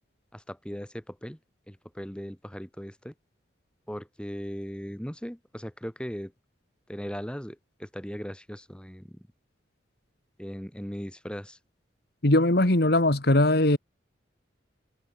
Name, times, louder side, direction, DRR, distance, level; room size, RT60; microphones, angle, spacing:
voice 1, 0.3-1.4 1.7-3.1 3.9-6.3 6.9-9.3 10.4-11.6, equal, 5° left, 3.9 m, -38 dB
voice 2, 12.2-13.8, left 1 dB, 60° left, 2.3 m, -20 dB
head